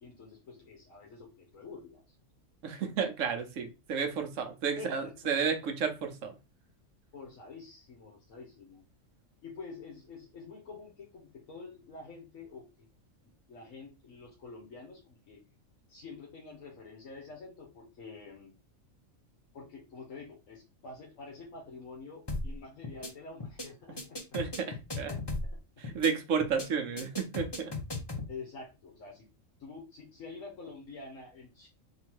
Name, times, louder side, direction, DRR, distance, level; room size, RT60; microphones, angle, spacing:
voice 1, 0.0-2.1 4.8-5.1 7.1-8.9 9.4-12.9 13.5-15.4 15.9-18.5 19.5-24.2 25.0-25.4 27.0-27.1 28.3-29.3 29.6-31.7, left 4 dB, 70° left, 1.4 m, -47 dB
voice 2, 2.6-6.4 24.3-25.1 25.8-27.7, right 6 dB, 70° right, 1.1 m, -32 dB
sound 1, 22.3-22.6 22.8-23.1 23.4-23.7 24.0-25.6 25.8-26.1 26.4-26.7 27.0-28.3, left 2 dB, 20° left, 0.8 m, -36 dB
3.8 x 2.7 x 4.4 m
omnidirectional pair, 1.4 m